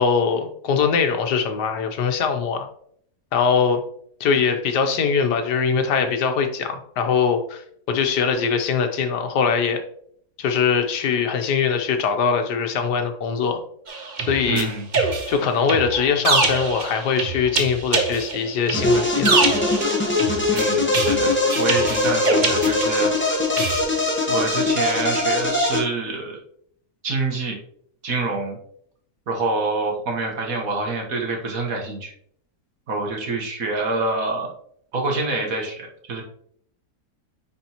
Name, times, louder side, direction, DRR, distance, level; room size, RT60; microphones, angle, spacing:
voice 1, 0.0-2.7 3.3-3.8 4.2-7.6 7.9-9.8 10.4-13.6 14.3-14.7 15.3-19.4, left 6 dB, 85° left, 7 dB, 1.5 m, -22 dB
sound 1, 13.9-23.2 23.6-23.8, right 3 dB, 35° right, 0.8 m, -25 dB
voice 2, 14.5-14.9 20.5-23.1 24.3-26.4 27.0-27.6 28.0-28.6 29.3-32.1 32.9-34.5 34.9-36.2, right 3 dB, 60° right, 1 dB, 1.6 m, -26 dB
sound 2, 18.7-25.8, left 2 dB, 10° left, 0.9 m, -21 dB
9.4 x 4.3 x 2.9 m, 0.65 s
omnidirectional pair, 1.7 m